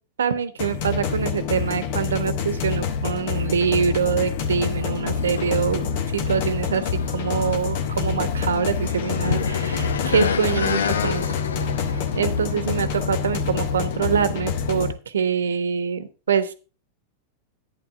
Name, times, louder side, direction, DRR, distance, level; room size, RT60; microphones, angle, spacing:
voice 1, 0.2-5.9 6.1-11.3 12.1-16.5, right 7 dB, 65° right, 14 dB, 1.2 m, -24 dB
sound 1, 0.6-14.9, left 6 dB, 50° left, 1.5 m, -27 dB
sound 2, 4.2-14.8, left 6 dB, 65° left, 0.9 m, -31 dB
11.5 x 9.7 x 3.6 m, 0.34 s
figure-of-eight pair, 90°, 0 cm